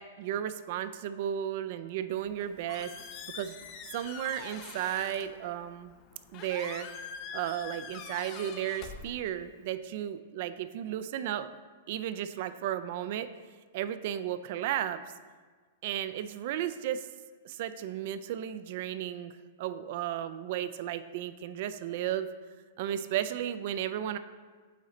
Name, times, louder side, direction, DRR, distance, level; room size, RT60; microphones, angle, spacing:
voice 1, 0.0-2.9 3.3-3.6 3.9-5.9 6.3-6.9 7.3-11.5 11.9-13.3 13.7-15.0 15.8-17.1 17.4-22.3 22.8-24.2, right 11 dB, 55° right, 12 dB, 0.3 m, -34 dB
Squeak, 2.2-9.7, left 7 dB, 35° left, 0.4 m, -45 dB
8.1 x 3.1 x 3.8 m, 1.5 s
hypercardioid pair, 135°, 0 cm